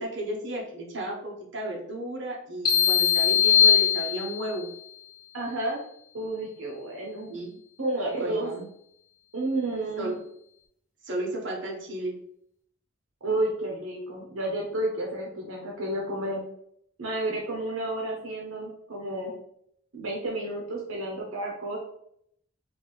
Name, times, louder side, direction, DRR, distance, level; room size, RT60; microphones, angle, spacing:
voice 1, 0.0-4.7 7.3-7.6 8.2-8.7 10.0-10.2 11.0-12.1, right 1 dB, 60° right, -2 dB, 1.0 m, -33 dB
sound 1, 2.7-4.6, left 9 dB, 45° left, 1.1 m, -20 dB
voice 2, 5.3-5.8 6.1-7.4 7.8-8.5 9.3-10.2 13.2-16.4 17.0-19.3 19.9-21.8, right 1 dB, 85° right, -1 dB, 0.9 m, -31 dB
4.0 x 2.5 x 3.5 m, 0.71 s
head